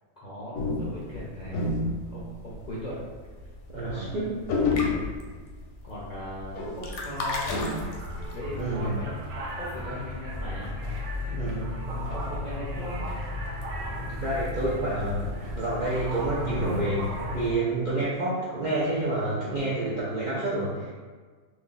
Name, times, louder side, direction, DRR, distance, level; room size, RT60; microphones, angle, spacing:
voice 1, 0.2-1.7 2.1-3.1 3.7-4.3 4.8-5.1 5.8-7.9 8.3-10.7 11.1-11.4 11.8-13.0, left 1 dB, 50° left, -8 dB, 0.5 m, -39 dB
sound 1, 0.5-2.8 3.1-3.4 3.7-3.9 4.1-4.2 4.5-5.7 5.9-8.4, left 3 dB, 85° left, 1.1 m, -28 dB
voice 2, 3.7-4.4 8.6-8.9 11.3-11.7 14.0-15.2 15.5-20.9, right 2 dB, 60° right, -8 dB, 0.5 m, -28 dB
sound 2, 7.8-17.5, left 1 dB, 85° right, 1.1 m, -34 dB
2.6 x 2.5 x 3.8 m, 1.5 s
omnidirectional pair, 1.5 m